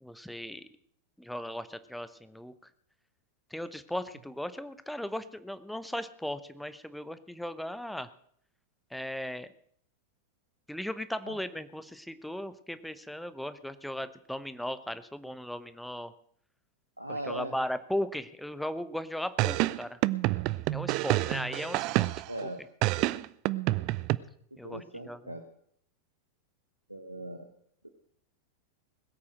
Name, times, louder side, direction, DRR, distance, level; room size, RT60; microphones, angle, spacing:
voice 1, 0.0-0.7 1.2-2.5 3.5-8.1 8.9-9.5 10.7-16.1 17.1-20.0 20.7-22.1 22.4-22.5 24.6-25.3, left 1 dB, ahead, 13 dB, 0.9 m, -37 dB
voice 2, 17.0-17.5 22.3-22.6 24.6-25.4 26.9-27.5 27.8-27.9, right 1 dB, 85° right, 6 dB, 1.1 m, -39 dB
sound 1, 19.4-22.4 22.8-24.2, right 19 dB, 40° right, 0.5 m, -28 dB
20.5 x 8.6 x 6.3 m, 0.64 s
figure-of-eight pair, 90°, 0 cm